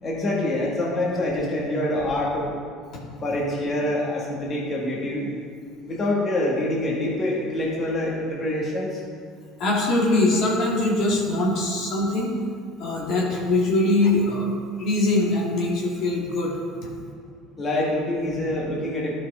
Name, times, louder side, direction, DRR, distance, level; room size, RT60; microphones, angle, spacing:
voice 1, 0.0-2.6 3.2-5.3 5.9-9.0 17.6-19.1, left 1 dB, 35° left, -3 dB, 1.8 m, -25 dB
voice 2, 9.6-12.3 12.8-16.9, left 2 dB, 60° left, -3 dB, 2.0 m, -22 dB
12.5 x 5.8 x 3.7 m, 2.2 s
supercardioid pair, 85°, 0 cm